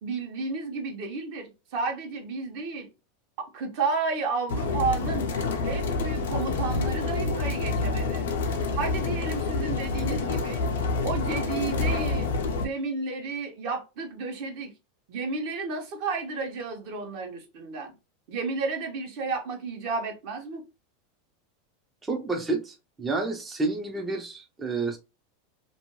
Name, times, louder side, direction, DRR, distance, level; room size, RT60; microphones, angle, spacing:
voice 1, 0.0-2.9 3.4-5.3 5.6-8.3 8.7-10.6 11.0-14.7 15.1-17.9 18.3-20.6, right 4 dB, 55° right, 0.9 m, -32 dB
sound 1, 4.5-12.7, left 3 dB, 85° left, 0.5 m, -28 dB
voice 2, 22.1-25.0, right 3 dB, 15° right, 0.4 m, -29 dB
2.5 x 2.2 x 3.0 m
supercardioid pair, 135°, 0 cm